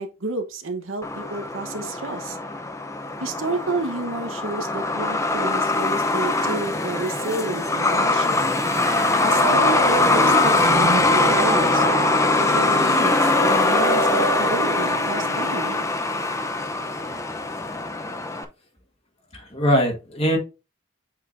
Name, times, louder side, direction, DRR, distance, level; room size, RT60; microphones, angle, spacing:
voice 1, 0.0-2.4 3.2-8.5 9.2-11.9 12.4-15.8, right 2 dB, 85° right, 1.1 m, -30 dB
Truck, 1.0-18.4, left 2 dB, 15° left, 0.6 m, -22 dB
sound 1, 8.5-15.9, right 4 dB, 50° right, 0.7 m, -30 dB
voice 2, 19.3-20.4, equal, 30° left, 2.2 m, -21 dB
7.9 x 4.9 x 2.6 m
head